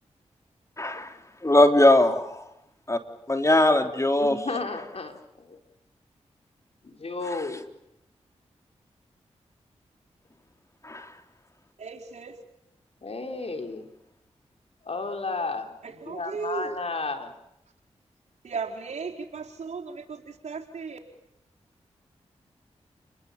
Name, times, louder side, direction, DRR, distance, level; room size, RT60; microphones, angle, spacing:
voice 1, 0.8-1.1 1.4-2.2 2.9-3.0 3.3-4.4 10.8-11.0, left 1 dB, 25° left, 3.6 m, -19 dB
voice 2, 4.2-5.6 6.8-7.6 13.0-13.9 14.8-15.7 16.1-17.3, left 3 dB, 55° left, 4.3 m, -33 dB
voice 3, 11.8-12.4 15.8-16.8 18.4-21.0, right 5 dB, 70° right, 4.4 m, -36 dB
30.0 x 21.5 x 7.2 m
cardioid pair, 40°, 12 cm